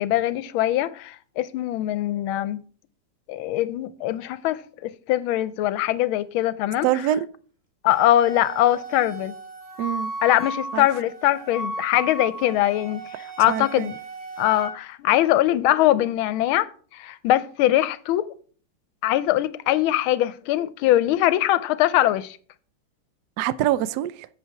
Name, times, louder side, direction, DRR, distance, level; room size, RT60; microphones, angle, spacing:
voice 1, 0.0-2.6 3.3-6.9 7.8-9.3 10.2-13.9 14.4-18.3 19.0-22.4, left 14 dB, 80° left, 1.4 m, -22 dB
voice 2, 6.8-7.3 9.8-10.1 10.7-10.9 13.5-13.9 23.4-24.3, right 12 dB, 80° right, 0.9 m, -24 dB
Wind instrument woodwind instrument, 7.9-14.7, right 1 dB, 10° right, 1.5 m, -35 dB
8.3 x 7.4 x 4.6 m
omnidirectional pair, 2.3 m